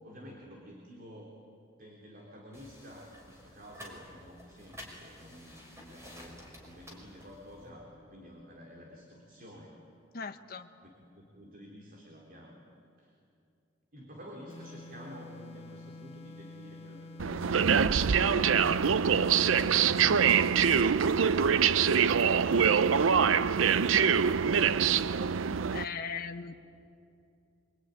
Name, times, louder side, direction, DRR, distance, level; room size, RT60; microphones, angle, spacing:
voice 1, 0.0-1.3 1.8-9.8 10.8-10.9 11.2-12.6 13.0-13.1 13.9-21.3 21.8-25.5, equal, 45° right, 0 dB, 3.6 m, -50 dB
sound 1, 2.5-7.7, equal, 15° right, 5.8 m, -51 dB
voice 2, 10.1-10.7 25.7-26.5, left 6 dB, 50° left, 6 dB, 1.1 m, -38 dB
sound 2, 14.5-20.3, left 2 dB, 35° left, 1.4 m, -48 dB
sound 3, 17.2-25.9, right 7 dB, 90° right, 0.6 m, -24 dB
26.0 x 23.5 x 9.7 m, 2.6 s
head